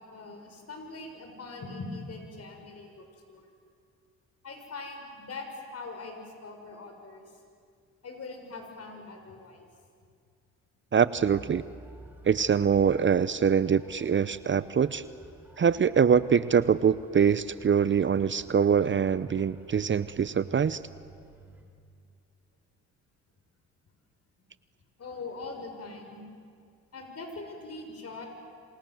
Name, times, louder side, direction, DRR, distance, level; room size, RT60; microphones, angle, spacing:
voice 1, 0.0-3.4 4.4-7.2 8.0-9.7 25.0-26.2 26.9-28.3, left 3 dB, 45° left, 4 dB, 6.8 m, -42 dB
voice 2, 10.9-11.6 12.2-15.0 15.6-20.8, right 7 dB, 35° right, 16 dB, 0.8 m, -24 dB
sound 1, 11.0-21.6, right 1 dB, 5° right, 5.2 m, -51 dB
27.5 x 26.5 x 7.9 m, 2.2 s
supercardioid pair, 65°, 33 cm